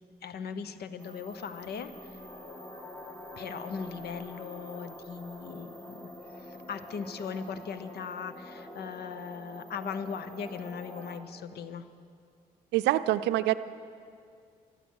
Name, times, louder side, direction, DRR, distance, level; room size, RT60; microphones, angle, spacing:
voice 1, 0.2-1.9 3.4-6.1 6.5-11.8, left 6 dB, 65° left, 12 dB, 0.8 m, -39 dB
sound 1, 1.0-11.2, equal, 15° left, 2.2 m, -46 dB
voice 2, 12.7-13.5, right 15 dB, 85° right, 13 dB, 0.5 m, -25 dB
14.0 x 12.0 x 6.4 m, 2.3 s
supercardioid pair, 60°, 18 cm